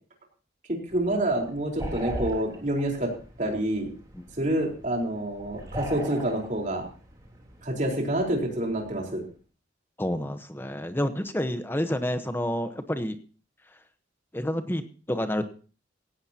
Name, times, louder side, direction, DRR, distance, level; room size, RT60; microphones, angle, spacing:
voice 1, 0.7-3.1 3.4-3.9 4.4-6.8 7.6-9.2, right 1 dB, 40° right, 1 dB, 4.3 m, -27 dB
sound 1, 0.9-9.2, right 1 dB, 20° right, 3.4 m, -40 dB
voice 2, 10.0-13.2 14.3-15.5, left 1 dB, 10° left, 9 dB, 1.1 m, -29 dB
17.0 x 17.0 x 2.9 m, 0.38 s
head